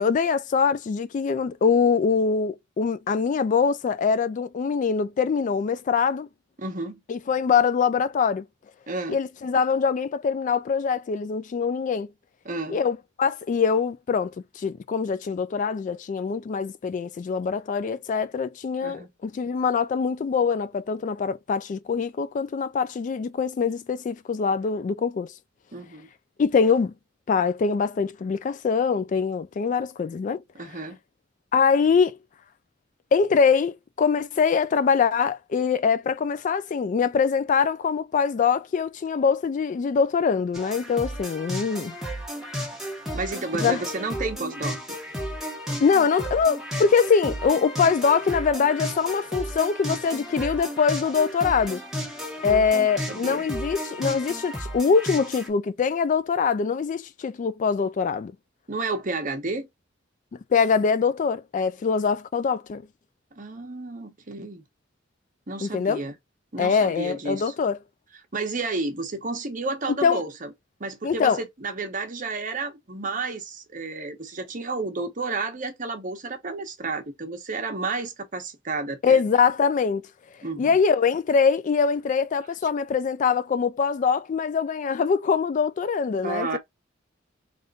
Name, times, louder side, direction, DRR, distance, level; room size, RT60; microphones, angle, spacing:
voice 1, 0.0-6.3 7.1-8.5 9.1-12.1 12.7-25.3 26.4-26.9 27.3-30.4 31.5-32.2 33.1-42.0 43.5-43.8 45.8-51.8 52.4-58.3 60.3-62.8 65.6-66.0 66.6-67.8 69.9-70.2 71.0-71.4 79.0-80.0 80.4-86.6, left 5 dB, 40° left, 0.3 m, -23 dB
voice 2, 6.6-7.0 8.9-9.2 12.4-12.8 18.8-19.1 25.7-26.1 30.5-31.0 43.1-44.8 52.5-52.8 53.1-53.4 58.7-59.7 63.4-64.6 65.5-66.1 66.5-67.5 68.3-70.5 70.8-79.2 80.4-80.8 82.6-82.7 86.2-86.6, right 3 dB, 45° right, 1.0 m, -31 dB
sound 1, 40.5-55.5, equal, 5° right, 1.1 m, -33 dB
3.5 x 2.5 x 4.0 m
head